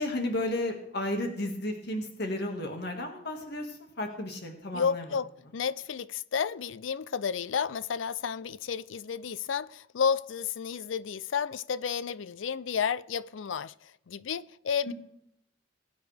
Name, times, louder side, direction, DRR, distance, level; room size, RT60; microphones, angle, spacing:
voice 1, 0.0-5.1 14.9-15.0, left 1 dB, 60° left, 1.9 m, -33 dB
voice 2, 4.7-14.9, left 6 dB, 75° left, 0.5 m, -31 dB
20.5 x 9.2 x 3.4 m
head